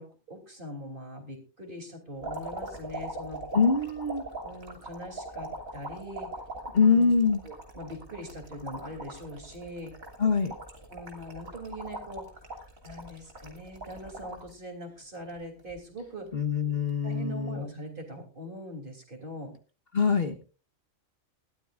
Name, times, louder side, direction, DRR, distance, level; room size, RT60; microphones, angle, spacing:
voice 1, 0.0-3.4 4.4-6.3 6.8-7.1 7.4-9.9 10.9-12.2 12.8-16.3 17.0-19.5, equal, 40° right, 3 dB, 3.4 m, -42 dB
sound 1, 2.2-14.5 15.0-15.7 16.7-16.9, right 2 dB, 85° right, 3.5 m, -41 dB
voice 2, 3.5-4.2 6.7-7.4 10.2-10.5 16.3-17.6 19.9-20.4, left 5 dB, 45° left, 5 dB, 1.5 m, -24 dB
20.0 x 13.0 x 2.5 m, 0.33 s
omnidirectional pair, 1.4 m